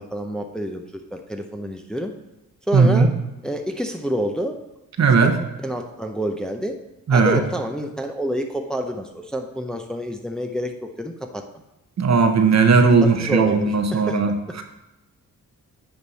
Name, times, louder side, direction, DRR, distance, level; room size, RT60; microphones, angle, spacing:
voice 1, 0.0-2.1 2.7-3.1 3.4-4.6 5.2-5.3 5.6-6.8 7.1-11.4 13.0-14.2, equal, ahead, 4 dB, 0.6 m, -28 dB
voice 2, 2.7-3.1 5.0-5.4 7.1-7.4 12.0-14.3, right 4 dB, 50° right, 6 dB, 0.9 m, -16 dB
9.8 x 3.4 x 4.0 m, 1.0 s
cardioid pair, 65°, 35 cm